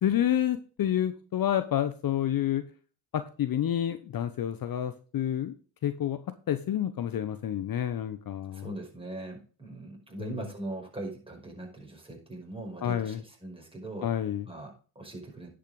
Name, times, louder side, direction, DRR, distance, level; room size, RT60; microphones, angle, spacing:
voice 1, 0.0-2.6 3.1-5.5 5.8-6.2 6.5-8.7 10.2-10.4 12.8-13.2 14.0-14.4, left 10 dB, 45° left, 11 dB, 1.0 m, -29 dB
voice 2, 8.5-14.1 14.5-15.5, right 2 dB, 10° right, 0 dB, 5.4 m, -41 dB
10.5 x 5.8 x 4.9 m, 0.38 s
supercardioid pair, 75°, 48 cm